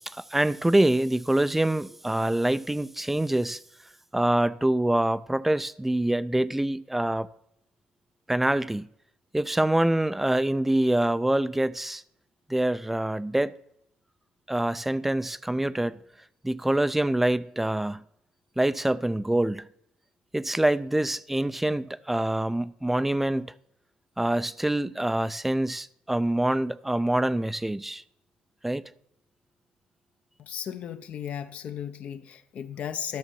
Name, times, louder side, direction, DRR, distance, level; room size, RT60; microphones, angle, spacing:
voice 1, 0.1-3.6 4.1-7.3 8.3-8.9 9.3-12.0 12.5-13.5 14.5-16.0 16.4-18.0 18.6-19.7 20.3-23.5 24.2-28.0 28.6-28.8, right 1 dB, 5° right, 0.4 m, -25 dB
voice 2, 30.4-33.2, left 9 dB, 55° left, 0.8 m, -35 dB
12.5 x 6.5 x 6.9 m
cardioid pair, 115°, 3 cm